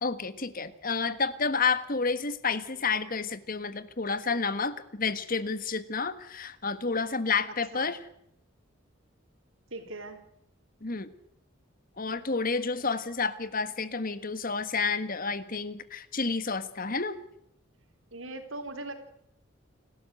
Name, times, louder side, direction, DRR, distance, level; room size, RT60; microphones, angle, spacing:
voice 1, 0.0-8.0 10.8-11.1 12.0-17.2, left 4 dB, 45° left, 13 dB, 1.5 m, -30 dB
voice 2, 9.7-10.2 18.1-18.9, right 2 dB, 80° right, 6 dB, 4.0 m, -39 dB
29.5 x 12.5 x 7.9 m, 0.77 s
head